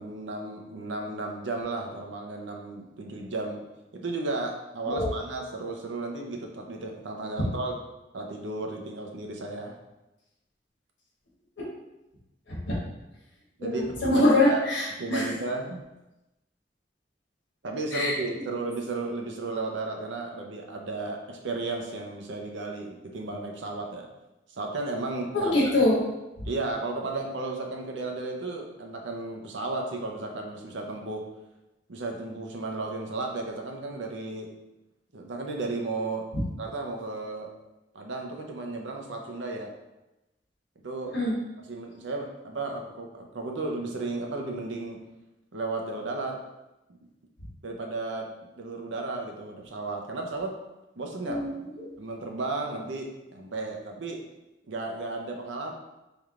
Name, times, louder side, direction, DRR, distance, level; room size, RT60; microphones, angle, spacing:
voice 1, 0.0-3.6 3.9-7.8 8.1-9.8 13.6-14.6 15.0-15.8 17.6-24.1 24.6-25.7 26.4-31.2 31.9-34.5 35.1-36.3 36.6-37.5 37.9-39.7 40.8-41.1 41.7-45.0 45.5-46.4 47.6-48.3 48.6-50.5 51.0-51.5 52.0-54.2 54.7-55.7, right 3 dB, 90° right, 1 dB, 0.7 m, -34 dB
voice 2, 4.9-5.2 11.6-11.7 12.5-12.8 13.6-15.3 17.9-18.1 25.3-26.0 41.1-41.3 51.3-51.9, left 1 dB, 85° left, -4 dB, 1.3 m, -24 dB
4.4 x 3.5 x 2.4 m, 0.97 s
head